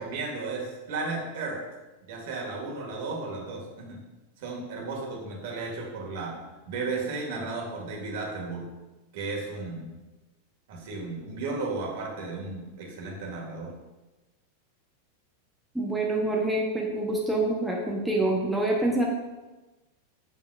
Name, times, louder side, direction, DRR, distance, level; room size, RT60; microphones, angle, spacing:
voice 1, 0.0-1.6 2.1-4.0 4.4-6.4 6.6-8.7 9.1-9.9 10.7-13.7, right 3 dB, 50° right, -1 dB, 1.8 m, -34 dB
voice 2, 15.7-19.0, right 2 dB, 5° right, -2 dB, 0.9 m, -26 dB
7.5 x 6.8 x 2.4 m, 1.1 s
figure-of-eight pair, 90°, 0 cm